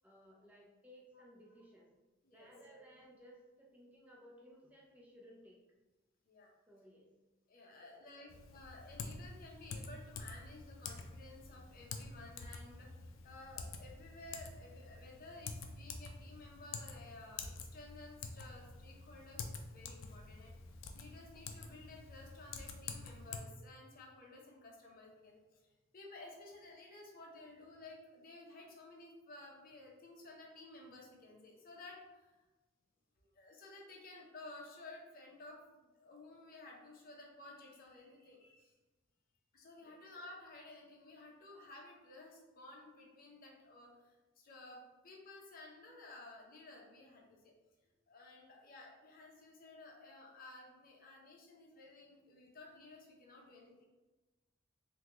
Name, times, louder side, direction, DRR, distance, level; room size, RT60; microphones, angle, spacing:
voice 1, 0.0-1.9 2.3-5.6 6.7-7.1 7.8-8.3 39.8-40.0, equal, 10° right, -3 dB, 0.5 m, -60 dB
voice 2, 7.5-32.4 33.2-38.8 39.5-47.5 48.1-53.9, left 2 dB, 45° left, -1 dB, 0.7 m, -55 dB
Typing, 8.3-23.4, left 4 dB, 75° left, 0.4 m, -48 dB
3.6 x 2.2 x 2.9 m, 1.1 s
head